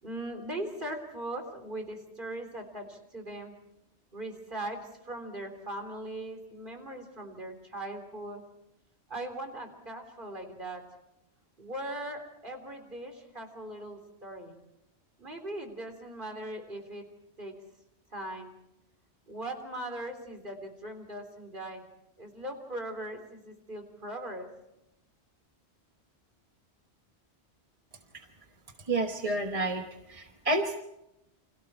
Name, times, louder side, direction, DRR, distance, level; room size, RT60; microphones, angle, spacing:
voice 1, 0.0-3.6 4.1-8.4 9.1-10.8 11.6-14.6 15.2-17.0 17.4-17.6 18.1-18.5 19.3-21.8 22.2-24.5, right 1 dB, 50° right, 4 dB, 3.8 m, -39 dB
voice 2, 28.9-30.8, right 2 dB, 35° right, 4 dB, 1.3 m, -30 dB
29.5 x 26.0 x 4.4 m, 0.86 s
omnidirectional pair, 1.1 m